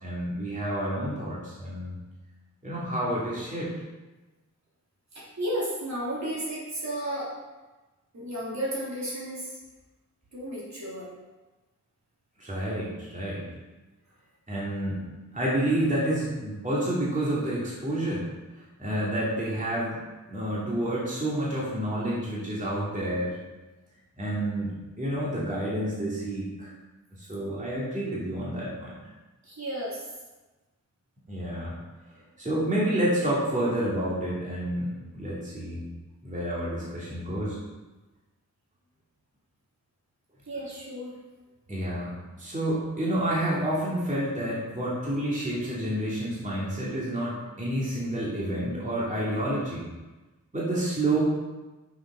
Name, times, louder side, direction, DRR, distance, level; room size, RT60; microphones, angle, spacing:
voice 1, 0.0-2.0 2.6-3.7 12.4-13.4 14.5-15.0 15.3-18.3 18.8-20.0 20.3-23.4 24.2-26.7 27.2-29.0 31.3-31.8 32.4-35.8 36.2-37.6 41.7-49.8 50.5-51.2, right 1 dB, 25° right, -7 dB, 2.8 m, -29 dB
voice 2, 5.1-7.3 8.1-9.6 10.3-11.1 29.4-30.0 40.5-41.1, right 1 dB, 55° right, -7 dB, 3.3 m, -33 dB
7.8 x 6.5 x 5.6 m, 1.1 s
wide cardioid pair, 120°, 33 cm